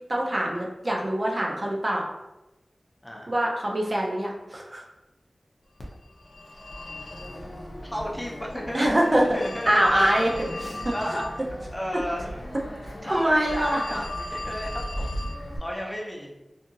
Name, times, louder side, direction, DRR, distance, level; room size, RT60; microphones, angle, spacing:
voice 1, 0.1-2.1 3.3-4.9 8.7-9.3 9.7-10.3 10.6-10.7 13.0-13.8, right 1 dB, 40° right, -1 dB, 0.6 m, -24 dB
Telephone, 5.8-15.6, left 1 dB, 70° left, 0.5 m, -36 dB
voice 2, 7.8-9.1 9.3-10.0 10.3-10.5 10.9-11.3 11.7-12.4 13.0-15.2 15.6-16.3, equal, 15° left, -2 dB, 0.7 m, -33 dB
2.7 x 2.5 x 2.7 m, 0.98 s
wide cardioid pair, 60°, 0 cm